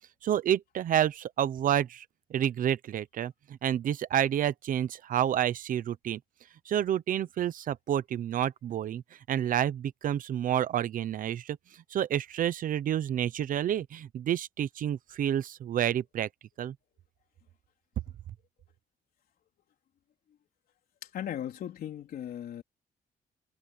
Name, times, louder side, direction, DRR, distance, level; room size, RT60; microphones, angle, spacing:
voice 1, 0.2-2.0 2.3-6.2 6.7-9.0 9.3-11.6 11.9-16.3 16.6-16.7, right 10 dB, 65° right, 0.9 m, -29 dB
voice 2, 21.0-22.6, left 10 dB, 75° left, 3.7 m, -37 dB
wide cardioid pair, 170°, 15 cm